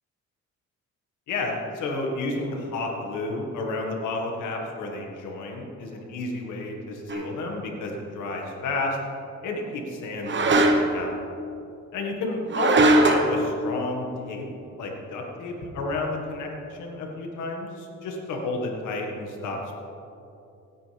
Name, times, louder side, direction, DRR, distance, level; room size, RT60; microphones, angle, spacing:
voice 1, 1.3-9.0 9.4-11.1 11.9-14.5 14.8-19.7, left 2 dB, 85° left, 1 dB, 1.9 m, -31 dB
sound 1, 7.1-7.3 10.2-11.0 12.5-13.4, right 1 dB, 40° right, 1.2 m, -19 dB
17.0 x 9.0 x 3.5 m, 2.8 s
cardioid pair, 90°, 30 cm